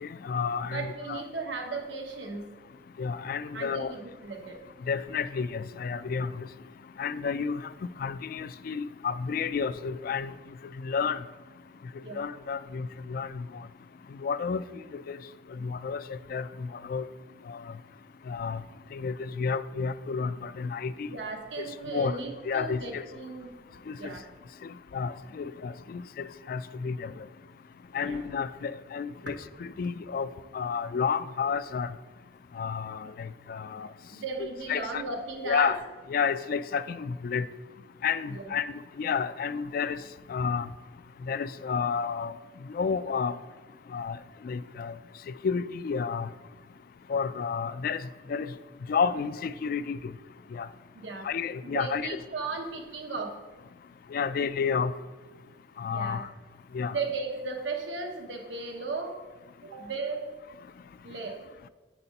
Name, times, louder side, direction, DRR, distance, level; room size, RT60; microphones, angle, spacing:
voice 1, 0.0-1.2 3.0-3.9 4.9-6.5 7.0-7.6 8.0-10.3 10.8-11.2 12.2-13.4 14.2-14.6 14.9-15.2 15.6-17.1 17.5-17.6 18.3-18.6 18.9-21.2 21.6-21.7 21.9-22.2 22.4-23.0 23.9-24.0 24.9-27.2 27.9-31.9 32.6-33.9 34.4-35.0 35.4-35.8 36.1-37.5 38.0-38.7 39.0-40.0 40.3-40.7 41.3-42.3 42.7-43.4 43.9-44.2 44.4-44.9 45.4-46.3 47.1-48.0 48.3-48.5 48.9-50.1 50.5-50.7 51.2-52.2 54.1-54.9 55.8-56.2 56.7-57.0, left 6 dB, 55° left, 14 dB, 0.3 m, -31 dB
voice 2, 0.6-2.5 3.5-4.6 12.0-12.2 15.6-15.7 21.1-23.5 24.0-24.2 28.0-28.2 34.1-35.7 38.3-38.5 50.9-51.3 51.6-53.3 55.9-56.2 56.9-59.2 59.6-60.3 61.0-61.4, right 4 dB, 90° right, 3 dB, 1.1 m, -36 dB
9.0 x 4.2 x 5.3 m, 1.3 s
head